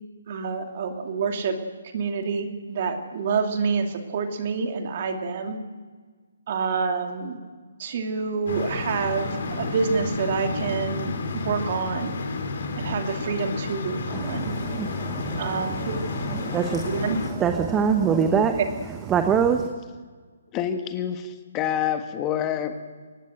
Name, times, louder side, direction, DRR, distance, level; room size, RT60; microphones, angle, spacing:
voice 1, 0.3-1.6 1.9-5.6 6.5-7.4 7.8-12.1 12.8-14.5 15.4-16.0 16.8-17.2 18.5-18.7, right 5 dB, 40° right, 5 dB, 2.8 m, -27 dB
sound 1, 8.5-17.3, left 3 dB, 55° left, 4.3 m, -31 dB
voice 2, 14.1-18.6 19.1-19.7, right 6 dB, 15° right, 7 dB, 1.0 m, -25 dB
voice 3, 20.5-22.8, left 9 dB, 20° left, 8 dB, 1.4 m, -27 dB
23.5 x 19.0 x 7.9 m, 1.5 s
hypercardioid pair, 155°, 0 cm